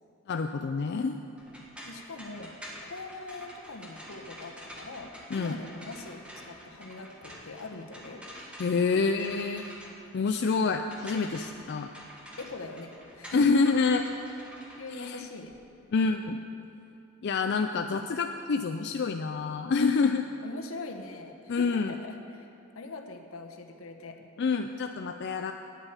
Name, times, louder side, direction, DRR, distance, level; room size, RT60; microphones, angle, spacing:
voice 1, 0.3-1.2 5.3-5.6 8.6-9.7 10.1-11.9 13.3-14.0 15.0-15.2 15.9-16.4 17.2-20.3 21.5-21.9 24.4-25.5, left 4 dB, 55° left, 5 dB, 0.4 m, -27 dB
sound 1, 1.4-15.6, equal, 5° right, 1.6 m, -47 dB
voice 2, 1.8-2.5 2.8-8.2 12.4-13.7 14.8-15.5 20.4-22.5 22.7-24.2, left 3 dB, 80° left, 4 dB, 1.1 m, -42 dB
9.2 x 8.8 x 8.2 m, 2.7 s
head